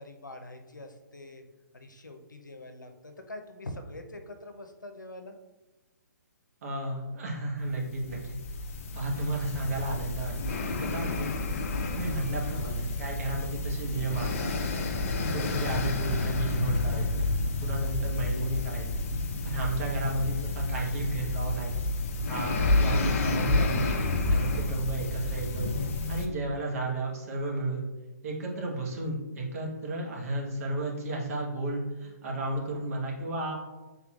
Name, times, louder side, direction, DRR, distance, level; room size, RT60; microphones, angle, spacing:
voice 1, 0.0-1.4 1.7-5.4 18.4-18.6, left 1 dB, 85° left, 5 dB, 0.7 m, -44 dB
voice 2, 6.6-8.4 8.9-11.3 11.9-14.5 15.2-17.3 17.6-18.9 19.4-21.7 22.3-25.7 26.1-27.9 28.2-33.5, right 2 dB, 50° right, -2 dB, 1.3 m, -33 dB
sound 1, 7.8-26.3, left 2 dB, 45° left, 0.6 m, -30 dB
5.8 x 3.7 x 2.4 m, 1.1 s
figure-of-eight pair, 135°, 10 cm